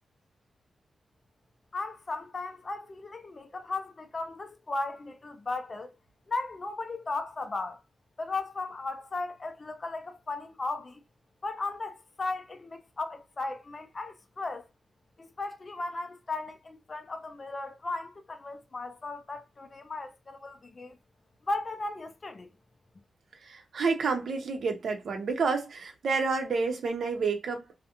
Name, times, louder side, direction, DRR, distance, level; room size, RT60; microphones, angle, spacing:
voice 1, 1.7-6.0 6.3-7.8 8.2-11.0 11.4-14.7 15.2-21.0 21.4-22.5, left 3 dB, 30° left, 0.4 m, -36 dB
voice 2, 23.4-27.8, right 4 dB, 65° right, 0.6 m, -29 dB
2.4 x 2.1 x 2.9 m
wide cardioid pair, 145°, 0 cm